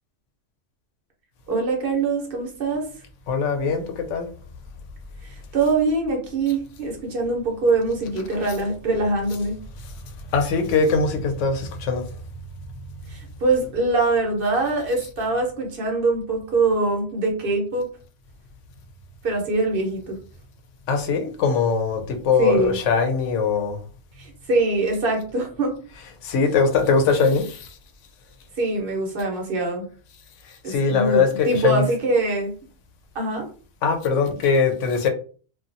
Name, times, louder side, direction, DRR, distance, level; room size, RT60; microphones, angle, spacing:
voice 1, 1.5-2.8 5.2-9.6 13.1-17.9 19.2-20.2 22.4-22.7 24.2-25.7 28.6-29.8 30.6-32.5 33.1-33.5, right 3 dB, 50° right, 1 dB, 0.9 m, -23 dB
voice 2, 3.3-4.3 9.8-9.9 10.3-12.0 20.9-23.8 26.2-27.7 30.7-31.8 33.8-35.1, left 5 dB, 75° left, 6 dB, 0.9 m, -21 dB
2.7 x 2.3 x 2.5 m, 0.40 s
omnidirectional pair, 1.3 m